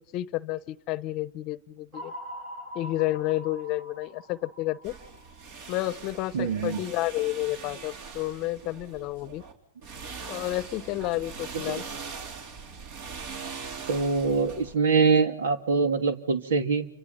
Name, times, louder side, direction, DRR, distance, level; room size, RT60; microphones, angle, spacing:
voice 1, 0.1-2.1 2.7-4.9 5.7-9.4 10.3-11.8, left 16 dB, 40° left, 17 dB, 0.9 m, -30 dB
sound 1, 1.9-6.2, equal, 30° right, 4.3 m, -43 dB
sound 2, 4.8-9.5 9.8-14.7, right 5 dB, 50° right, 4.0 m, -41 dB
voice 2, 6.3-6.8 11.7-11.8 13.9-16.9, right 5 dB, 75° right, 8 dB, 2.9 m, -24 dB
29.0 x 24.5 x 5.7 m, 0.66 s
hypercardioid pair, 135°, 0 cm